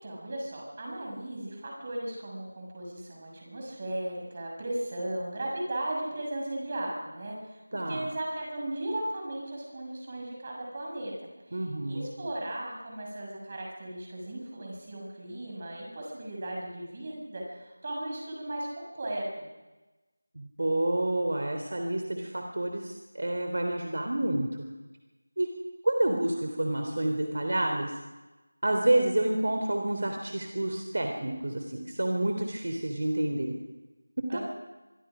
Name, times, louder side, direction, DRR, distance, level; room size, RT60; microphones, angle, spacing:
voice 1, 0.0-11.1 11.5-19.5 34.3-34.4, right 1 dB, 25° right, -1 dB, 6.7 m, -36 dB
voice 2, 7.7-8.1 11.5-12.1 20.3-24.7 25.4-25.5 25.8-28.0 28.6-33.5 34.3-34.4, right 1 dB, 55° right, 4 dB, 3.3 m, -29 dB
25.0 x 24.0 x 5.1 m, 1.1 s
figure-of-eight pair, 175°, 0 cm